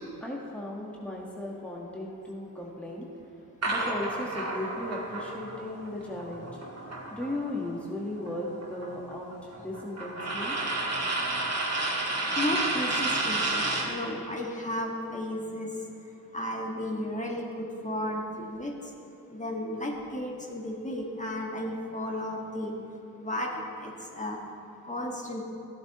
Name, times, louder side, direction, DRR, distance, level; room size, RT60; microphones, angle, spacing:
voice 1, 0.2-3.1 3.7-6.6 7.1-10.6, left 1 dB, 5° left, -3 dB, 1.5 m, -36 dB
sound 1, 3.6-7.7 8.0-14.0, right 2 dB, 40° right, 2.1 m, -31 dB
voice 2, 12.4-15.7 16.3-18.7 19.3-22.7 23.2-24.4 24.8-25.4, left 1 dB, 20° left, -1 dB, 1.7 m, -33 dB
14.0 x 8.2 x 3.0 m, 2.9 s
supercardioid pair, 40°, 39 cm